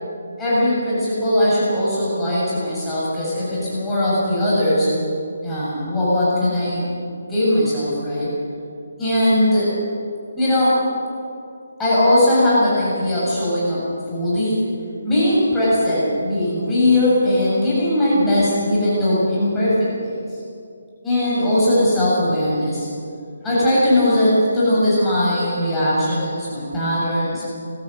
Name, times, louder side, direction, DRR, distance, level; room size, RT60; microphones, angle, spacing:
voice 1, 0.4-4.9 5.4-8.3 9.0-9.7 10.4-10.8 11.8-14.6 15.0-20.2 21.0-22.9 23.4-27.5, left 1 dB, 10° left, -10 dB, 6.9 m, -19 dB
21.5 x 15.5 x 7.9 m, 2.4 s
hypercardioid pair, 165°, 0 cm